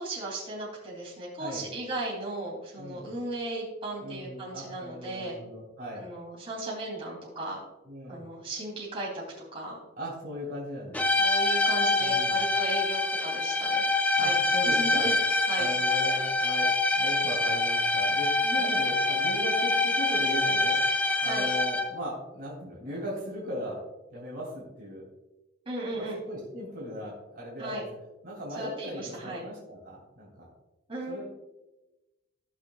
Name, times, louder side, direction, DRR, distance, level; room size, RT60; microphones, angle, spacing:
voice 1, 0.0-5.4 5.9-7.6 8.1-9.2 9.5-9.8 11.2-13.9 14.2-14.4 14.6-15.1 15.5-15.7 18.4-18.8 21.2-21.5 25.6-26.2 27.6-27.8 28.6-29.4 30.9-31.2, right 2 dB, 30° right, -5 dB, 3.2 m, -36 dB
voice 2, 2.8-3.1 4.0-6.0 7.9-8.2 10.0-11.2 12.0-12.4 14.2-15.0 15.6-16.7 16.9-18.3 18.6-20.8 21.2-23.8 24.1-25.0 25.9-27.9 28.2-30.5 31.1-31.2, equal, 50° right, -4 dB, 3.0 m, -38 dB
sound 1, 10.9-22.1, left 2 dB, 10° left, 0.4 m, -25 dB
16.5 x 6.1 x 2.4 m, 1.0 s
head